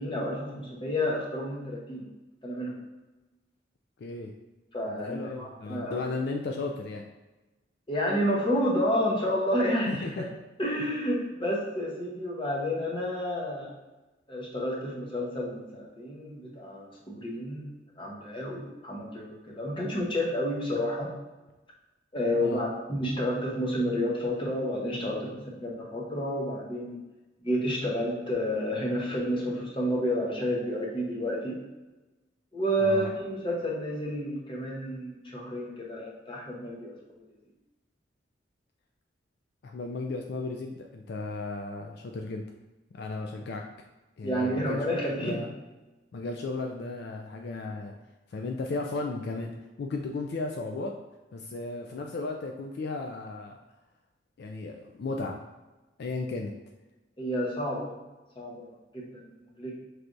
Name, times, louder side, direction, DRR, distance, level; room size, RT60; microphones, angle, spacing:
voice 1, 0.0-2.0 2.4-2.7 4.7-6.1 7.9-10.2 10.6-13.7 14.3-17.6 18.0-21.1 22.1-25.3 25.6-27.0 27.4-31.6 32.5-36.9 44.2-45.4 57.2-57.9 58.4-59.7, equal, 25° left, -3 dB, 0.9 m, -30 dB
voice 2, 4.0-4.3 4.9-7.0 9.9-10.3 10.8-10.9 22.4-22.6 32.8-33.1 39.6-42.4 42.9-43.6 44.2-45.5 46.1-47.9 48.3-49.5 49.8-51.0 51.3-53.6 54.4-55.4 56.0-56.5, left 3 dB, 60° left, 2 dB, 0.3 m, -35 dB
5.9 x 3.3 x 2.6 m, 1.1 s
head